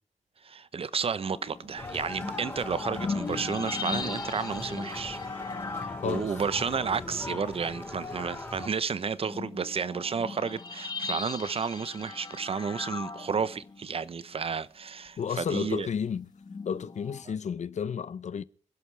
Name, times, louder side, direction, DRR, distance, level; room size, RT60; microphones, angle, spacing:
voice 1, 0.4-5.2 5.8-15.2 15.5-15.9, right 6 dB, 50° right, 0.9 m, -32 dB
sound 1, 1.2-8.3 8.7-8.8 9.1-14.1 16.3-17.2, left 4 dB, 35° left, 1.9 m, -39 dB
sound 2, 1.8-8.7, left 2 dB, 15° left, 7.0 m, -39 dB
voice 2, 6.0-6.3 15.2-16.3 16.6-18.4, left 7 dB, 70° left, 0.8 m, -32 dB
26.5 x 11.5 x 3.4 m
wide cardioid pair, 155°, 12 cm